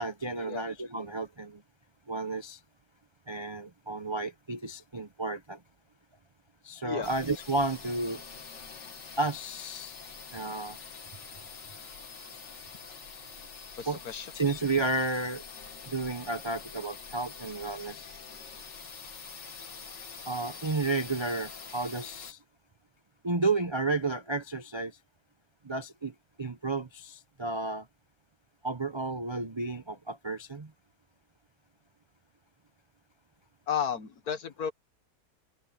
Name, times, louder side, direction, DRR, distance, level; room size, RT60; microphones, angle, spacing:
voice 1, 0.0-1.6 2.1-2.6 3.3-5.6 6.6-8.2 9.2-10.0 10.3-10.8 13.8-14.0 14.3-15.4 15.9-18.1 20.3-22.4 23.2-25.0 25.6-27.9 28.6-30.7, right 3 dB, 45° right, 0.3 m, -32 dB
sound 1, 7.0-22.3, left 5 dB, 85° left, 2.9 m, -45 dB
voice 2, 13.8-14.3 33.7-34.7, left 8 dB, 60° left, 1.7 m, -33 dB
open air
omnidirectional pair, 1.9 m